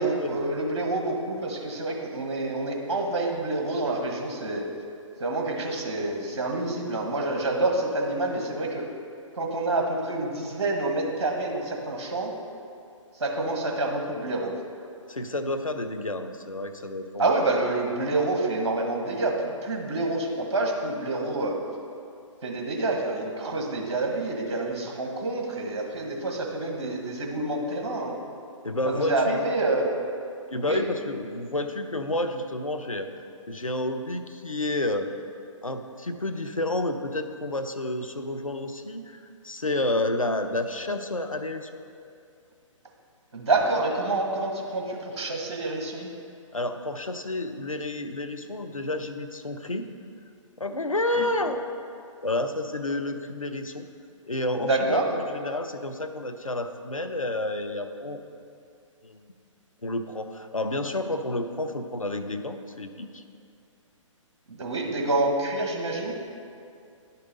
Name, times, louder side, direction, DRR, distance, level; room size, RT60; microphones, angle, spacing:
voice 1, 0.0-4.7 5.2-8.8 9.3-12.3 13.1-14.5 17.2-21.6 22.4-28.1 28.8-30.0 30.6-30.8 43.3-46.1 51.2-51.3 54.6-55.0 64.5-66.1, right 2 dB, 55° right, 1 dB, 1.4 m, -27 dB
voice 2, 15.1-17.3 28.6-29.4 30.5-33.1 33.5-35.1 35.6-41.8 46.5-49.9 50.6-51.6 52.2-53.9 54.3-58.2 59.0-59.2 59.8-63.2, left 2 dB, 90° left, 7 dB, 0.7 m, -30 dB
10.5 x 5.5 x 4.1 m, 2.4 s
figure-of-eight pair, 130°, 17 cm